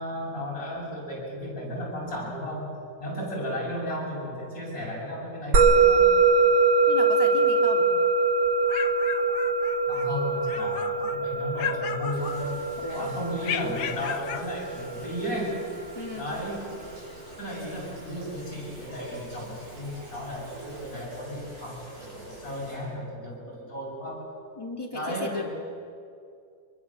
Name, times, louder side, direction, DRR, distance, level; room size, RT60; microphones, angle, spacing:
voice 1, 0.0-2.7 3.0-6.1 9.9-12.7 13.0-15.5 16.1-16.7 17.4-24.3 24.9-25.5, equal, 50° left, -4 dB, 7.9 m, -34 dB
Musical instrument, 5.5-16.1, right 4 dB, 75° right, 2.1 m, -23 dB
voice 2, 6.9-7.9 12.8-13.1 15.9-16.3 24.6-25.5, left 2 dB, 10° left, 0 dB, 2.6 m, -35 dB
sound 1, 8.4-10.1 10.4-11.2 11.6-12.8 13.4-14.5, left 10 dB, 90° left, 1.6 m, -35 dB
sound 2, 12.1-22.8, right 1 dB, 55° right, 8.1 m, -46 dB
25.0 x 23.0 x 7.6 m, 2.4 s
omnidirectional pair, 2.0 m